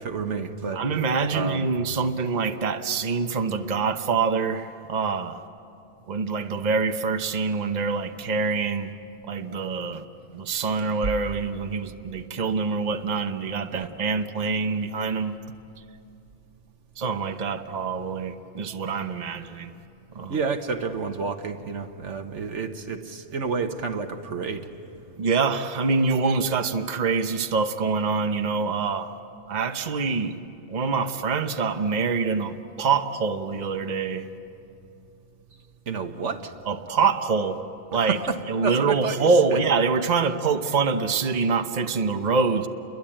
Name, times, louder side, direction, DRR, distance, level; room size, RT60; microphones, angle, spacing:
voice 1, 0.0-0.9 1.3-1.7 13.7-13.9 20.3-24.7 35.9-36.5 38.0-39.6, right 5 dB, 85° right, 6 dB, 1.6 m, -30 dB
voice 2, 0.7-5.4 6.1-8.9 9.2-10.0 10.3-15.4 17.0-19.7 20.1-20.4 25.2-29.1 29.5-30.4 30.7-34.3 36.7-37.6 37.9-38.2 38.5-42.7, right 4 dB, 40° right, 7 dB, 1.0 m, -25 dB
29.5 x 22.5 x 8.8 m, 2.6 s
omnidirectional pair, 1.2 m